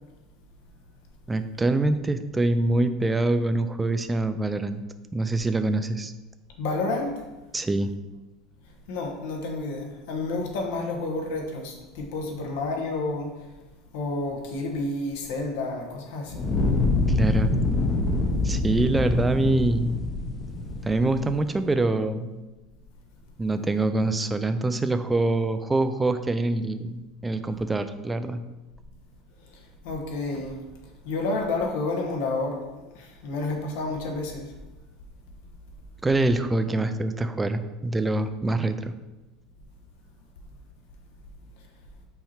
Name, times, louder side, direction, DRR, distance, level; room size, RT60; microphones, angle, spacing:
voice 1, 1.3-4.8 5.1-6.1 7.5-7.9 17.1-17.5 18.4-20.0 20.8-22.4 23.4-28.4 36.0-38.9, right 2 dB, 10° right, 10 dB, 0.4 m, -25 dB
voice 2, 6.6-7.2 8.9-13.3 13.9-16.5 29.5-30.6 31.0-34.5, left 2 dB, 80° left, 2 dB, 1.2 m, -30 dB
Fire, 16.3-21.5, left 2 dB, 25° left, 0.7 m, -25 dB
5.7 x 4.3 x 4.4 m, 1.1 s
supercardioid pair, 145°, 0 cm